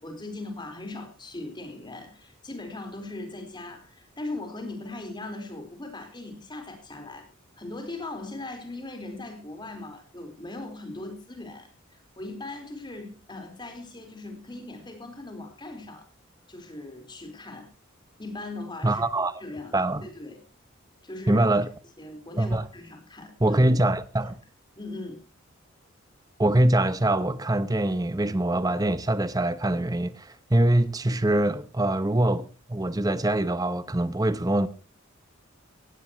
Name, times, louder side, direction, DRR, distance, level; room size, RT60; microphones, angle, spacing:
voice 1, 0.0-7.3 7.5-16.1 16.5-17.7 18.2-19.0 19.4-20.4 21.0-21.4 22.0-23.6 24.8-25.2, left 2 dB, 20° left, 4.3 m, -39 dB
voice 2, 18.8-19.3 19.7-20.1 21.3-21.7 22.4-22.6 23.4-24.4 26.4-34.7, right 1 dB, 15° right, 0.8 m, -23 dB
18.0 x 17.0 x 3.1 m
head